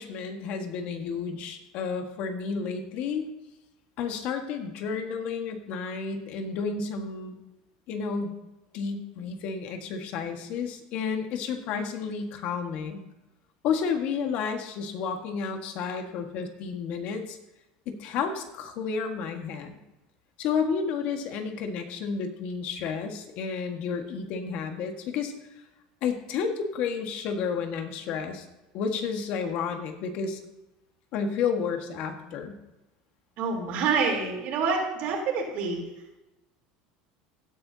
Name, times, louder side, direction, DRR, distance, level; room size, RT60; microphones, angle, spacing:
voice 1, 0.0-3.3 4.0-7.4 7.9-8.3 8.7-13.0 13.6-17.4 17.8-19.8 20.4-25.3 26.0-28.4 28.7-30.4 31.1-32.6, left 6 dB, 55° left, 5 dB, 1.6 m, -31 dB
voice 2, 33.4-35.8, right 5 dB, 55° right, 1 dB, 3.6 m, -27 dB
16.0 x 10.0 x 2.8 m, 0.98 s
supercardioid pair, 140°, 3 cm